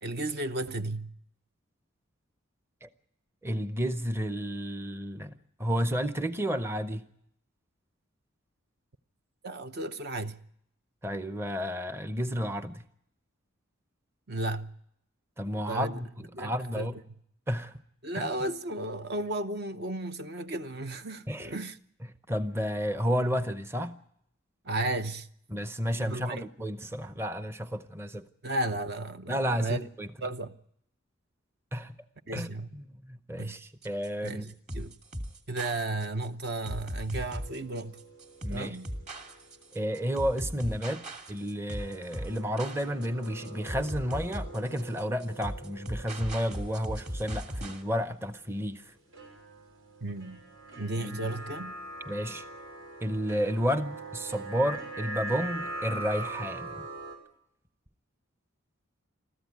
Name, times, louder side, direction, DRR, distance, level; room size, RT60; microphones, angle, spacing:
voice 1, 0.0-1.1 9.4-10.4 14.3-14.7 15.7-16.0 16.3-17.0 18.0-21.8 24.6-25.3 25.9-26.4 28.4-29.8 30.2-30.6 32.3-32.8 33.4-33.6 34.2-34.9 35.5-38.0 38.5-38.9 50.0-50.4 50.8-51.8, right 2 dB, 50° right, 0.9 m, -34 dB
voice 2, 3.4-5.3 5.6-7.0 11.0-12.8 15.4-16.9 17.5-17.8 18.1-18.3 21.3-21.5 22.3-24.0 25.5-28.2 29.3-30.1 31.7-32.0 32.3-34.5 38.4-38.8 39.7-41.0 41.3-48.9 51.0-51.4 52.1-52.5 53.0-56.9, equal, 10° right, 0.7 m, -31 dB
sound 1, 33.8-47.8, equal, 35° right, 2.4 m, -38 dB
sound 2, 37.3-39.8 40.1-40.2 41.7-48.2 49.1-57.2, right 2 dB, 85° right, 6.2 m, -43 dB
22.0 x 14.5 x 9.3 m
head